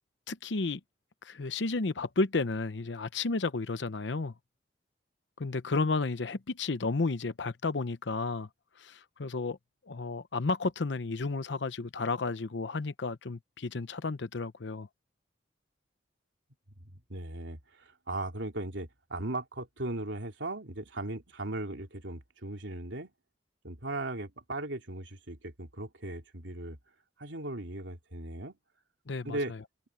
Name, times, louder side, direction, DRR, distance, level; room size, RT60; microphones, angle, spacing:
voice 1, 0.3-0.8 1.2-4.3 5.4-8.5 8.8-9.6 9.9-14.9 29.1-29.6, left 3 dB, 75° left, 0.7 m, -32 dB
voice 2, 16.8-23.1 23.6-26.8 27.2-28.6 29.2-29.5, right 2 dB, 90° right, 3.0 m, -38 dB
head